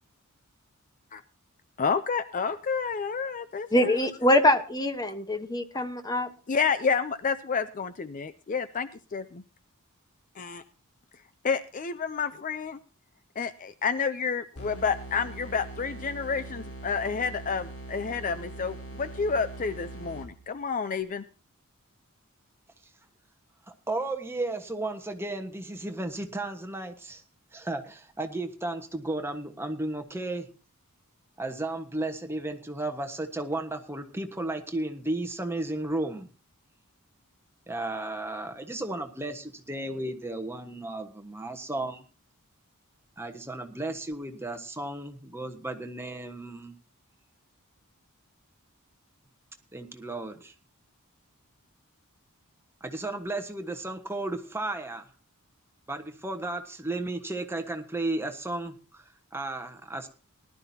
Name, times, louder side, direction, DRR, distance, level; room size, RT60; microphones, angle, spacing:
voice 1, 1.8-4.0 5.7-5.8 6.5-9.4 10.4-10.6 11.4-12.8 13.4-21.2, left 5 dB, 35° left, 0.5 m, -30 dB
voice 2, 3.7-6.3, left 1 dB, 15° left, 1.1 m, -24 dB
sound 1, 14.5-20.6, right 2 dB, 80° left, 3.8 m, -42 dB
voice 3, 23.9-27.2 27.5-30.5 31.4-36.3 37.7-42.0 43.2-46.7 49.7-50.5 52.8-55.1 55.9-60.1, right 2 dB, 10° right, 1.3 m, -34 dB
19.5 x 12.0 x 2.8 m
head